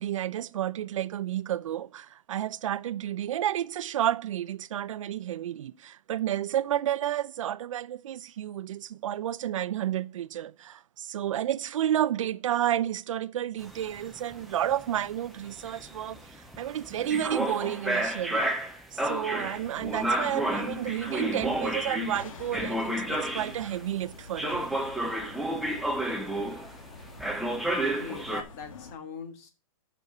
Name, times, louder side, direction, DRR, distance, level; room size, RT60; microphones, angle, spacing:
voice 1, 0.0-18.5 18.9-24.6, right 11 dB, 70° right, 0.5 m, -31 dB
sound 1, 13.6-23.8 24.4-26.8 27.2-28.4, right 1 dB, ahead, 0.4 m, -31 dB
sound 2, 19.4-28.9, left 3 dB, 75° left, 1.6 m, -48 dB
voice 2, 27.8-29.5, left 6 dB, 30° left, 1.4 m, -41 dB
6.3 x 5.3 x 6.4 m
hypercardioid pair, 175°, 17 cm